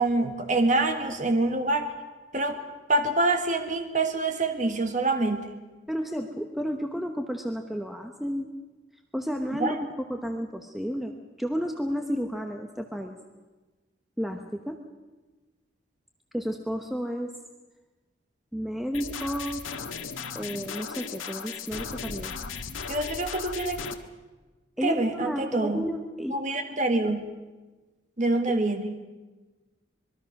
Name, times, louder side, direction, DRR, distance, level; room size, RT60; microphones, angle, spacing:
voice 1, 0.0-1.9 2.3-2.6 2.9-5.5 9.6-9.8 22.9-23.8 24.8-25.8 26.3-27.3 28.2-28.9, right 2 dB, 40° right, 6 dB, 1.5 m, -26 dB
voice 2, 5.9-8.5 9.1-9.8 10.1-13.1 14.2-14.8 16.3-17.3 18.5-19.6 20.3-22.3 24.8-26.4, equal, ahead, 4 dB, 1.0 m, -32 dB
sound 1, 18.9-23.9, left 6 dB, 85° left, 1.5 m, -36 dB
25.5 x 21.5 x 6.0 m, 1.2 s
head